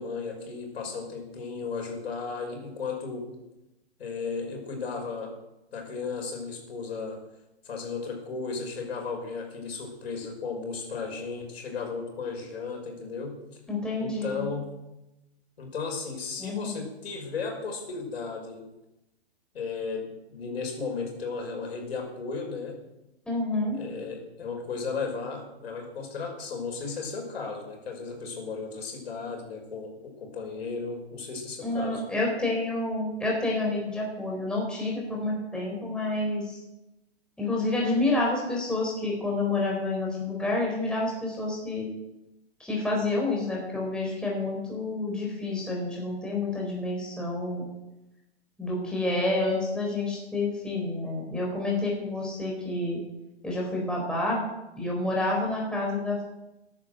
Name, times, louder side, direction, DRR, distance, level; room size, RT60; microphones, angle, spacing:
voice 1, 0.0-3.3 4.0-5.3 5.7-7.2 7.6-13.4 14.0-14.7 15.6-18.6 19.5-22.8 23.7-32.0, left 4 dB, 65° left, 2 dB, 5.7 m, -35 dB
voice 2, 13.7-14.4 16.4-16.8 23.3-23.8 31.6-36.6 37.4-41.9 42.6-47.6 48.6-53.0 53.4-54.4 54.8-56.2, left 2 dB, 5° left, -3 dB, 4.2 m, -29 dB
15.5 x 10.5 x 6.6 m, 0.95 s
hypercardioid pair, 130°, 33 cm